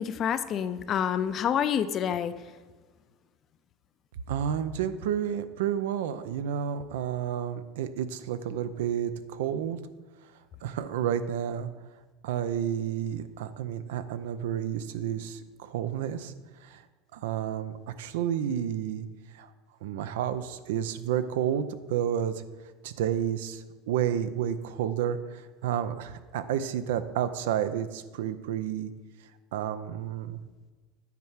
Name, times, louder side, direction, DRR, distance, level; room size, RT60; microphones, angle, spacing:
voice 1, 0.0-2.3, left 8 dB, 35° left, 13 dB, 0.4 m, -28 dB
voice 2, 4.3-9.8 10.6-11.7 12.2-16.3 16.7-16.8 17.1-19.1 19.4-19.5 19.8-22.4 22.8-25.2 25.6-28.9 29.5-30.4, right 9 dB, 90° right, 12 dB, 0.5 m, -30 dB
9.4 x 4.6 x 5.7 m, 1.3 s
supercardioid pair, 145°, 0 cm